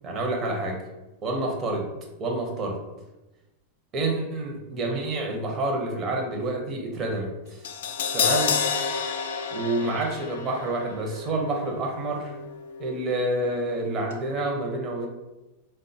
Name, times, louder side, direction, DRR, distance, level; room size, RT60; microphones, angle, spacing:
voice 1, 0.0-0.8 1.2-1.9 2.2-2.8 3.9-7.7 8.1-8.5 9.5-12.4 12.8-15.1, right 2 dB, 35° right, 0 dB, 0.6 m, -28 dB
Crash cymbal, 7.6-13.8 14.1-14.2, left 6 dB, 75° left, 0.3 m, -30 dB
3.4 x 2.1 x 2.6 m, 1.0 s
hypercardioid pair, 110°, 0 cm